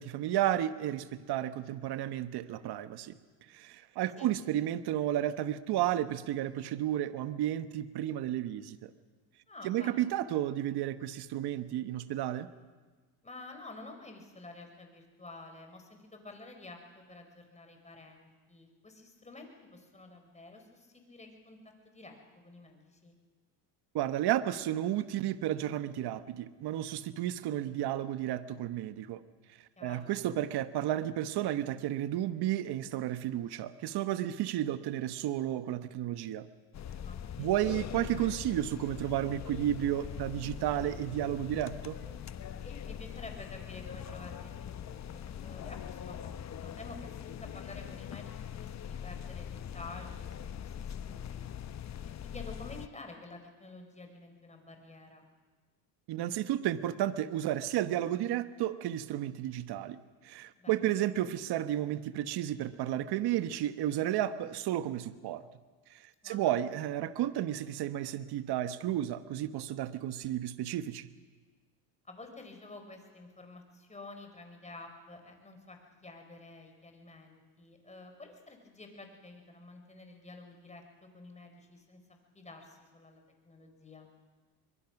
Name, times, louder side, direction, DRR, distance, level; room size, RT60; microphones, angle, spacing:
voice 1, 0.0-3.1 3.5-8.9 9.6-12.5 23.9-29.2 29.8-36.5 37.4-42.0 56.1-60.0 60.2-65.4 65.9-71.1, right 12 dB, 60° right, 12 dB, 1.2 m, -32 dB
voice 2, 9.5-10.1 13.2-23.1 29.8-30.2 36.9-37.6 42.6-51.4 52.0-55.2 60.6-60.9 66.2-66.6 72.0-82.0 82.3-84.1, left 2 dB, 15° left, 4 dB, 4.5 m, -50 dB
sound 1, 36.7-52.9, left 9 dB, 35° left, 0.9 m, -42 dB
Wind instrument woodwind instrument, 40.7-42.1 42.4-42.6 42.9-43.0 43.4-43.5 43.8-44.5 44.8-46.7, left 7 dB, 55° left, 6.5 m, -57 dB
23.0 x 23.0 x 6.0 m, 1.4 s
supercardioid pair, 95°, 45 cm